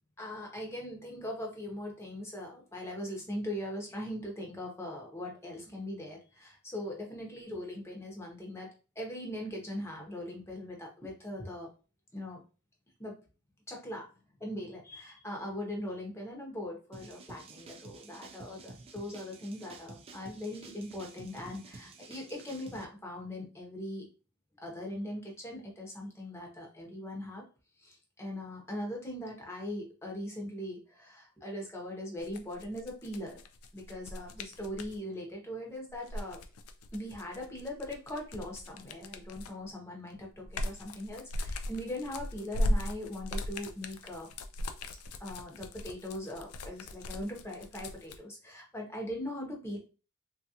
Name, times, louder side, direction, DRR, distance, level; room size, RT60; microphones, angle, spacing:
voice 1, 0.2-8.7 9.0-11.7 12.1-12.4 13.0-13.2 13.7-14.1 14.4-24.1 24.6-27.4 27.8-33.4 33.7-36.4 36.9-44.3 45.2-49.8, left 1 dB, 10° left, -1 dB, 0.8 m, -40 dB
sound 1, 16.9-22.8, right 3 dB, 25° right, 0.3 m, -50 dB
sound 2, 32.2-35.0 35.9-39.7 40.1-48.2, left 1 dB, 85° left, 0.4 m, -37 dB
3.4 x 2.4 x 2.8 m, 0.34 s
head